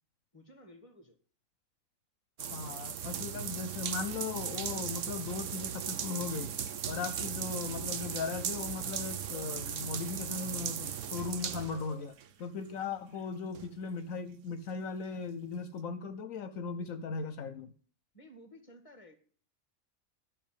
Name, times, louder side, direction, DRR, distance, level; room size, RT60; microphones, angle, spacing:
voice 1, 0.3-1.2 12.7-12.9 18.1-19.1, equal, 25° left, 7 dB, 2.0 m, -55 dB
voice 2, 2.4-6.6 6.9-17.7, left 5 dB, 75° left, 11 dB, 1.2 m, -38 dB
sound 1, 2.4-12.3 12.8-12.9 13.5-13.7, right 8 dB, 65° right, 1.2 m, -37 dB
12.5 x 6.5 x 7.5 m, 0.44 s
omnidirectional pair, 1.4 m